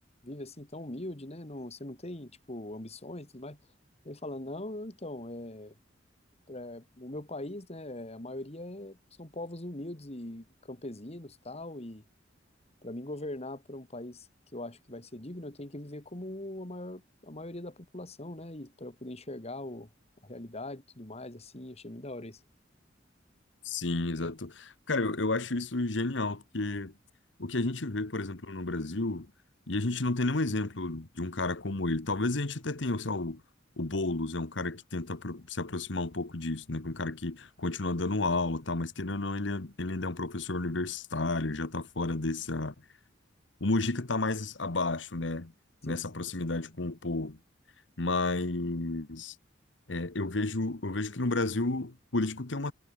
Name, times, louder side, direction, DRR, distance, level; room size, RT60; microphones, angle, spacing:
voice 1, 0.2-3.6 4.0-5.8 6.5-12.0 12.8-19.9 20.2-22.4 45.8-46.0, left 1 dB, 35° left, 2.4 m, -41 dB
voice 2, 23.6-26.9 27.4-29.3 29.7-33.4 33.8-42.7 43.6-45.5 45.8-47.4 48.0-49.3 49.9-52.7, left 2 dB, 70° left, 1.4 m, -31 dB
head